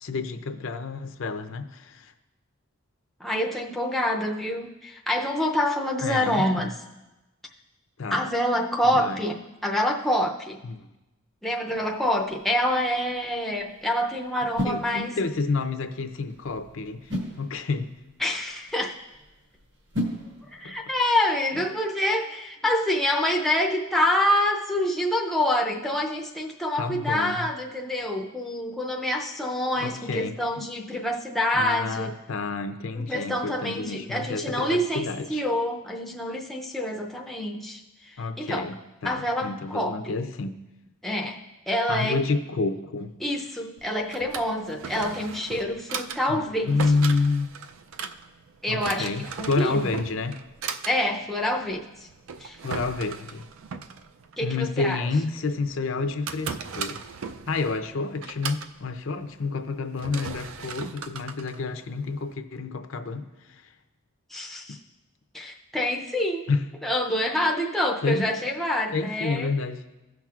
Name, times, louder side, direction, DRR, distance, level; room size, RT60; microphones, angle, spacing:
voice 1, 0.0-2.1 6.0-6.7 8.0-8.3 8.9-9.3 10.6-10.9 14.6-17.9 20.6-20.7 21.5-21.7 26.8-27.5 29.8-30.4 31.5-35.4 38.2-40.6 41.9-43.2 46.3-47.5 48.7-50.4 52.6-53.5 54.4-57.0 57.5-63.7 66.5-66.7 68.0-68.3 68.9-69.8, left 3 dB, 60° left, 8 dB, 0.5 m, -29 dB
voice 2, 3.2-6.8 8.1-10.6 11.4-15.2 18.2-19.0 20.5-32.1 33.0-38.7 39.0-40.1 41.0-41.4 41.7-42.2 43.2-47.0 48.6-49.8 50.9-52.1 52.4-52.6 54.4-55.0 64.3-64.8 65.3-66.5 66.8-69.5, left 1 dB, ahead, -1 dB, 0.5 m, -27 dB
sound 1, 11.7-21.0, equal, 50° right, 1.4 m, -38 dB
Drawer open or close, 43.8-62.3, right 6 dB, 65° right, 0.4 m, -38 dB
16.5 x 5.9 x 2.4 m, 1.0 s
head